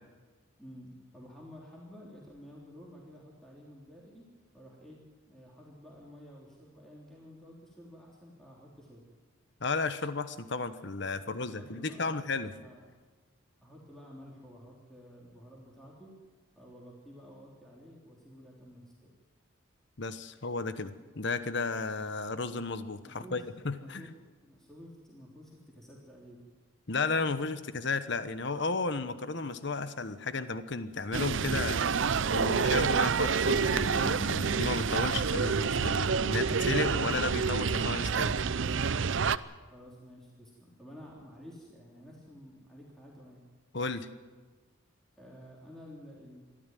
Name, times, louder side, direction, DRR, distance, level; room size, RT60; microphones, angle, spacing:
voice 1, 0.6-4.3 4.5-5.0 5.3-9.1 11.2-12.8 13.6-16.1 16.5-18.9 23.0-24.1 24.4-26.5 39.7-43.4 45.2-46.4, equal, ahead, -4 dB, 3.5 m, -51 dB
voice 2, 9.6-12.5 20.0-24.1 26.9-32.0 32.3-38.3 43.7-44.1, left 3 dB, 55° left, 12 dB, 1.1 m, -33 dB
sound 1, 31.1-39.4, right 5 dB, 65° right, 0.6 m, -28 dB
23.5 x 14.0 x 9.2 m, 1.4 s
head